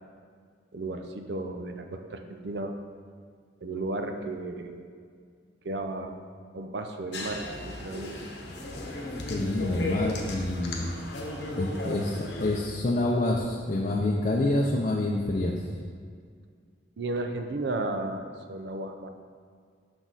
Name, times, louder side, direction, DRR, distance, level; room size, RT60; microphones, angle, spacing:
voice 1, 0.7-2.8 3.6-4.9 5.6-6.2 6.5-8.3 9.5-10.0 17.0-19.1, right 2 dB, 65° right, 5 dB, 0.5 m, -34 dB
sound 1, 7.1-12.6, left 2 dB, 65° left, 0.9 m, -36 dB
voice 2, 9.3-10.9 11.5-15.6, left 2 dB, 40° left, -2 dB, 0.5 m, -27 dB
6.1 x 6.1 x 4.0 m, 2.1 s
head